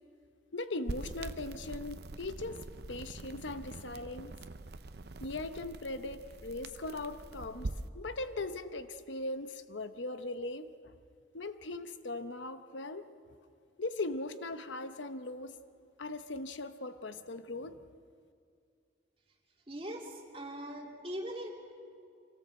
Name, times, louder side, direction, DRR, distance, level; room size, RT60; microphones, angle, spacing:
voice 1, 0.5-2.6 2.9-4.3 5.2-7.7 7.9-10.7 11.3-13.1 13.8-15.6 16.0-17.8, left 2 dB, 75° left, 10 dB, 0.9 m, -39 dB
sound 1, 0.9-7.9, right 2 dB, 55° right, 0.7 m, -44 dB
voice 2, 19.7-21.5, equal, 30° right, 0 dB, 2.6 m, -41 dB
25.0 x 18.0 x 7.6 m, 2.4 s
head